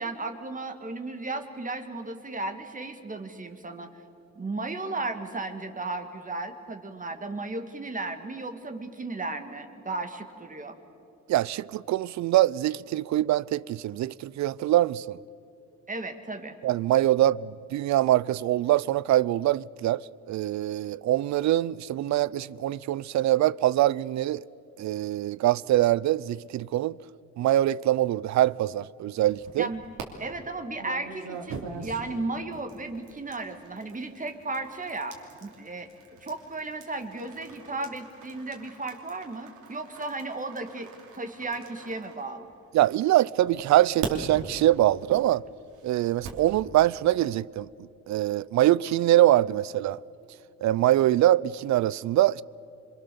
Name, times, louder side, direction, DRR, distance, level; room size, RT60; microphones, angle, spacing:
voice 1, 0.0-3.9 4.4-10.8 15.9-16.6 29.6-29.9 30.2-35.9 36.2-40.9 41.1-42.5, right 2 dB, 25° right, 2.0 m, -35 dB
voice 2, 11.3-15.2 16.6-24.4 24.8-27.0 27.4-29.7 42.7-45.4 45.8-47.7 48.1-50.0 50.6-52.4, right 14 dB, 65° right, 0.5 m, -24 dB
sound 1, 29.2-30.0 30.8-42.8 43.5-46.5, right 5 dB, 85° right, 3.1 m, -42 dB
27.0 x 22.5 x 6.9 m
cardioid pair, 90°, 30 cm